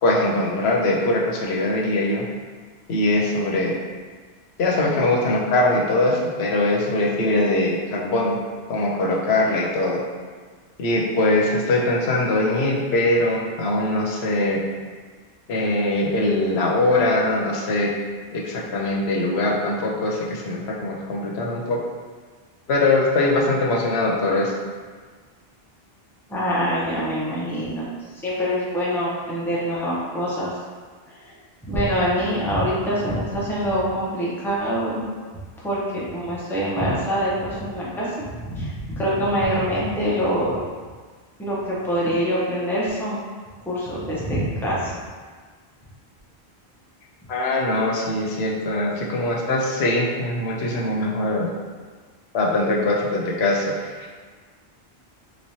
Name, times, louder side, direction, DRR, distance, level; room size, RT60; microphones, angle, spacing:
voice 1, 0.0-2.3 2.9-3.7 4.6-8.4 8.7-10.0 10.8-14.6 15.5-17.9 18.3-21.8 22.7-24.5 47.3-51.5 52.3-54.2, left 2 dB, 90° left, -2 dB, 0.9 m, -22 dB
voice 2, 26.3-30.6 31.1-31.3 31.7-35.0 35.6-40.6 41.4-43.2 43.6-45.0, equal, 5° left, -7 dB, 0.6 m, -25 dB
3.3 x 3.2 x 2.7 m, 1.5 s
omnidirectional pair, 1.1 m